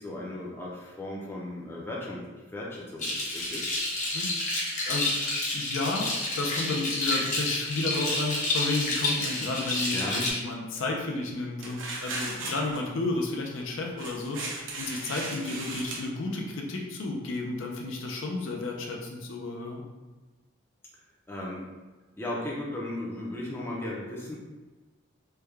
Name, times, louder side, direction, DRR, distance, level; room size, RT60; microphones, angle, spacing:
voice 1, 0.0-2.2 2.5-3.7 9.4-9.5 9.9-10.2 21.3-21.6 22.2-24.3, left 1 dB, 10° left, -4 dB, 0.5 m, -36 dB
sound 1, 3.0-10.3, left 2 dB, 35° left, 0.8 m, -29 dB
voice 2, 4.1-4.5 4.9-19.8, left 2 dB, 70° left, 0 dB, 0.5 m, -32 dB
sound 2, 11.6-12.8 14.0-16.0, right 3 dB, 70° right, 0.6 m, -37 dB
3.3 x 2.2 x 3.3 m, 1.2 s
head